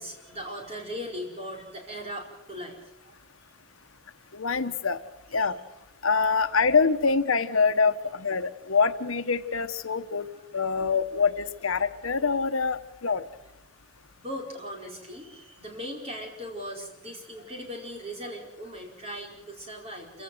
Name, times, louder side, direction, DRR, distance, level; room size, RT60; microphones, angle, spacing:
voice 1, 0.0-2.8 3.0-3.2 5.3-5.5 6.3-6.6 10.3-10.8 14.2-20.2, equal, 30° right, 0 dB, 4.9 m, -39 dB
voice 2, 4.3-5.0 5.3-5.5 6.0-10.3 10.5-13.2, left 5 dB, 75° left, 10 dB, 1.1 m, -25 dB
27.0 x 16.5 x 7.9 m, 0.92 s
head